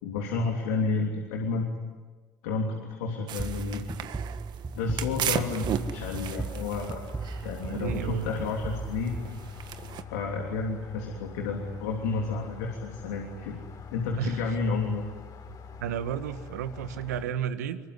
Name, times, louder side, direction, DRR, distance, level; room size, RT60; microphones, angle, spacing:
voice 1, 0.0-1.7 2.4-4.1 4.7-7.0 7.4-9.1 10.1-13.6 13.9-15.0, left 4 dB, 75° left, 1 dB, 3.2 m, -31 dB
sound 1, 3.3-10.0, right 10 dB, 55° right, 1.7 m, -36 dB
sound 2, 3.4-10.0, right 4 dB, 25° right, 1.4 m, -37 dB
sound 3, 5.3-17.2, left 6 dB, 50° left, 5.0 m, -44 dB
voice 2, 7.7-8.3 14.1-14.4 15.7-17.8, right 9 dB, 80° right, 11 dB, 1.5 m, -32 dB
25.5 x 23.5 x 9.8 m, 1.4 s
hypercardioid pair, 65°, 9 cm